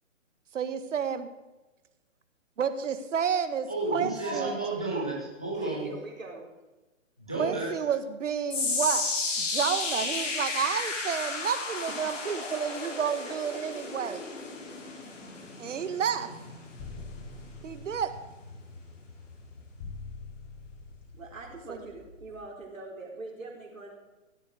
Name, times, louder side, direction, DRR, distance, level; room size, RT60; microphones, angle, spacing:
voice 1, 0.5-1.3 2.6-4.5 7.4-9.1 9.4-14.2 15.6-16.3 17.6-18.1 21.7-21.8, right 7 dB, 70° right, 11 dB, 1.6 m, -30 dB
voice 2, 3.7-5.9 7.2-7.7, right 2 dB, 5° left, -3 dB, 0.3 m, -31 dB
voice 3, 5.6-6.5 11.9-12.0 12.3-12.4 13.2-13.3 21.1-23.9, right 2 dB, 90° right, -1 dB, 4.3 m, -42 dB
sound 1, 8.5-20.8 21.1-21.5 22.1-22.2, left 3 dB, 70° left, 4.1 m, -34 dB
sound 2, 16.8-18.2 19.8-21.2, left 4 dB, 25° left, 0.9 m, -44 dB
16.5 x 9.0 x 5.0 m, 1.1 s
hypercardioid pair, 140°, 39 cm